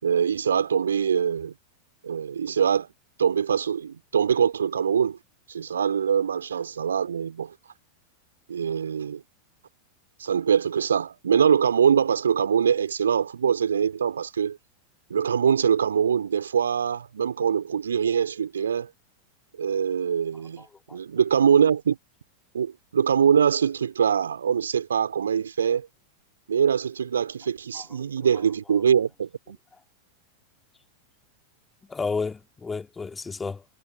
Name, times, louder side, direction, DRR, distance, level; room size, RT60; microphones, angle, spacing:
voice 1, 0.0-1.5 2.0-2.9 3.2-5.2 5.5-7.5 8.5-9.2 10.2-14.6 15.1-18.9 19.6-20.7 20.9-22.0 22.5-25.9 26.5-29.6, right 7 dB, 70° right, 3.8 m, -23 dB
voice 2, 20.6-21.0 27.7-28.0 31.9-33.6, left 4 dB, 15° left, 2.8 m, -32 dB
figure-of-eight pair, 90°, 0 cm